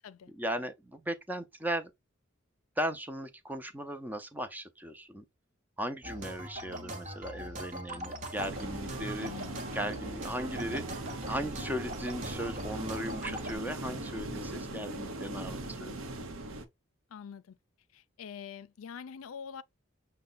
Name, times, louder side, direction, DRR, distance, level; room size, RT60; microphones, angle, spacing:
voice 1, 0.3-1.9 2.8-5.2 5.8-9.3 9.7-15.9, equal, 10° right, 0.5 m, -37 dB
sound 1, 6.0-13.5, right 1 dB, 35° right, 0.9 m, -42 dB
sound 2, 8.3-16.6, right 2 dB, 85° right, 0.8 m, -40 dB
voice 2, 9.2-9.6 17.1-17.6 17.9-19.6, left 7 dB, 85° left, 0.4 m, -45 dB
6.5 x 2.2 x 3.8 m
head